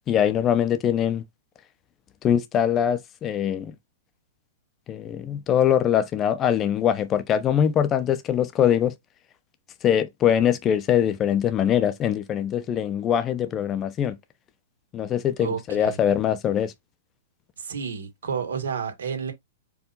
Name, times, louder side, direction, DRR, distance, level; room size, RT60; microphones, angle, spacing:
voice 1, 0.1-1.2 2.2-3.7 4.9-8.9 9.8-14.2 14.9-16.7, left 9 dB, 30° left, 0.7 m, -22 dB
voice 2, 15.4-16.0 17.6-19.3, right 6 dB, 80° right, 1.8 m, -30 dB
4.7 x 2.6 x 4.0 m
hypercardioid pair, 125°, 0 cm